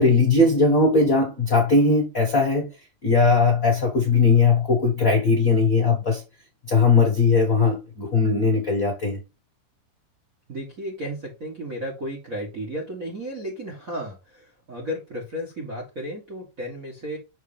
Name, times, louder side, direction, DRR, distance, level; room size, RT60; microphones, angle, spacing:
voice 1, 0.0-2.7 3.0-6.2 6.7-9.2, left 4 dB, 50° left, 1.0 m, -19 dB
voice 2, 10.5-17.2, equal, 40° right, 1.3 m, -33 dB
6.4 x 4.4 x 3.3 m
omnidirectional pair, 3.8 m